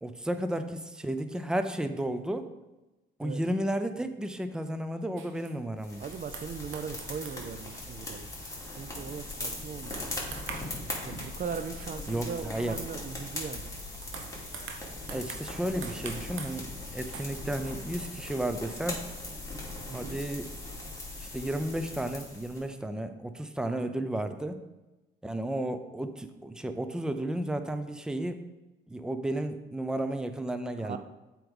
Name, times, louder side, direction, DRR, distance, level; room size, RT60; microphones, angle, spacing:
voice 1, 0.0-2.5 3.2-6.0 12.1-12.8 15.1-19.0 19.9-20.5 21.2-24.6 25.2-28.4 28.9-31.0, right 1 dB, 5° right, 9 dB, 0.6 m, -33 dB
sound 1, 5.2-5.6 6.1-9.6 9.8-10.8 11.2-12.5 13.2-13.3 13.8-17.4 17.6-18.2, right 6 dB, 80° right, 1.0 m, -46 dB
sound 2, 5.8-22.6, left 2 dB, 15° left, 2.6 m, -40 dB
voice 2, 6.0-8.3 8.8-10.2 11.0-13.7 19.9-20.2 30.8-31.0, right 6 dB, 45° right, 10 dB, 0.5 m, -39 dB
7.8 x 4.6 x 5.3 m, 1.1 s
cardioid pair, 90°, 20 cm